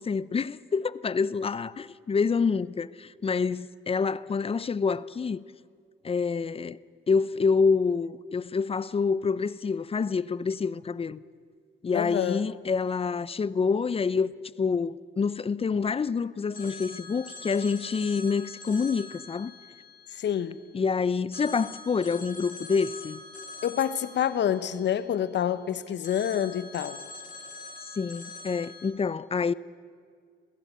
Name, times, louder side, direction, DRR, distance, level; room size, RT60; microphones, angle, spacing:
voice 1, 0.0-5.4 6.0-6.8 7.1-11.2 11.8-14.3 14.6-19.5 20.7-23.2 27.9-29.5, left 5 dB, 30° left, 0.6 m, -27 dB
voice 2, 11.9-12.4 20.1-20.6 23.6-27.0, left 9 dB, 65° left, 1.1 m, -27 dB
Telephone, 16.5-20.8 21.3-25.5 26.0-28.9, left 3 dB, 45° left, 3.2 m, -45 dB
21.5 x 16.0 x 8.3 m
cardioid pair, 90°, 20 cm